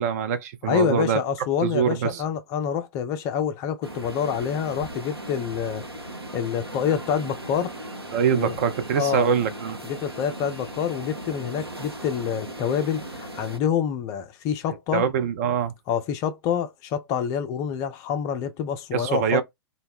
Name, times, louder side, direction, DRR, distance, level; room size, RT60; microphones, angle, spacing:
voice 1, 0.0-1.2 1.6-2.2 8.1-9.8 14.9-15.7 18.9-19.4, right 7 dB, 40° right, 0.4 m, -24 dB
voice 2, 0.6-5.9 6.3-7.7 8.3-8.6 8.9-9.3 9.8-15.0 15.9-19.4, left 8 dB, 25° left, 0.3 m, -27 dB
sound 1, 3.8-13.6, right 1 dB, 85° right, 0.7 m, -37 dB
2.1 x 2.0 x 3.3 m
figure-of-eight pair, 105°, 13 cm